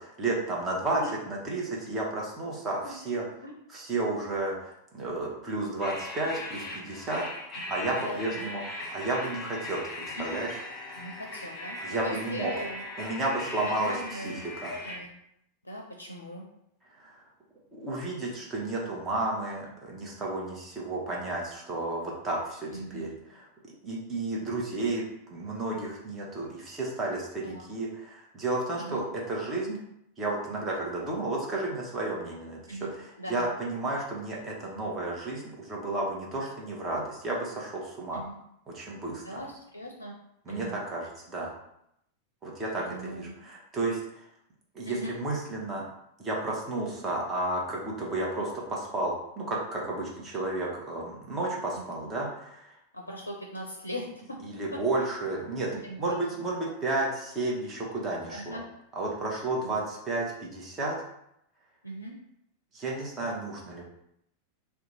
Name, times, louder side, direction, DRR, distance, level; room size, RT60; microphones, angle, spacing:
voice 1, 0.0-3.2 3.7-7.2 7.7-9.8 10.2-10.5 11.8-12.5 13.0-14.3 14.6-14.7 17.0-17.2 17.7-23.4 23.8-25.0 25.3-29.8 30.2-38.2 38.7-39.4 40.5-41.5 42.4-44.0 44.7-45.8 46.2-52.8 54.4-55.7 56.0-58.6 58.9-61.0 62.7-63.8, right 2 dB, 20° right, -3 dB, 1.0 m, -32 dB
sound 1, 5.8-15.0, left 1 dB, 25° left, 1.0 m, -39 dB
voice 2, 7.9-8.2 10.2-10.4 11.0-12.8 13.6-14.4 14.7-15.1 15.6-16.4 22.7-23.1 27.4-27.7 28.8-29.0 32.7-33.5 38.1-38.4 39.2-40.2 40.5-40.8 42.7-43.3 44.8-45.1 51.8-52.1 52.9-54.4 54.7-54.8 55.7-56.5 58.3-58.6 59.6-59.8 61.8-62.2, equal, 80° left, -1 dB, 0.4 m, -40 dB
2.8 x 2.2 x 4.0 m, 0.77 s
figure-of-eight pair, 90°, 0 cm